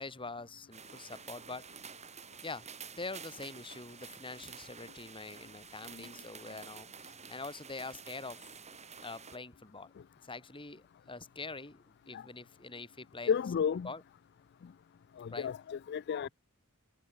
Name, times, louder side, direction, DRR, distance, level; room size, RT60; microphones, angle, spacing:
voice 1, 0.0-1.7 2.4-2.7 3.0-8.4 9.0-9.9 10.2-13.4 13.8-14.0 15.3-15.5 16.2-16.3, left 3 dB, 25° left, 6.4 m, -44 dB
sound 1, 0.7-9.4, right 6 dB, 30° right, 4.4 m, -50 dB
voice 2, 13.3-13.9 15.2-16.3, left 7 dB, 50° left, 0.3 m, -32 dB
head